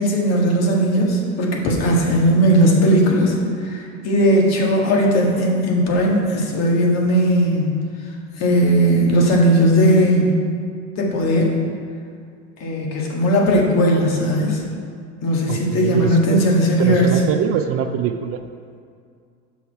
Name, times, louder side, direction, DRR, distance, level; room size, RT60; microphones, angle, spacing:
voice 1, 0.0-3.3 3.6-7.7 8.4-10.3 11.0-11.5 12.6-14.6 15.2-17.1, equal, 50° left, -1 dB, 1.6 m, -17 dB
voice 2, 15.5-16.4 16.8-18.4, right 8 dB, 45° right, 7 dB, 0.5 m, -23 dB
6.3 x 5.6 x 4.6 m, 2.3 s
supercardioid pair, 110°, 33 cm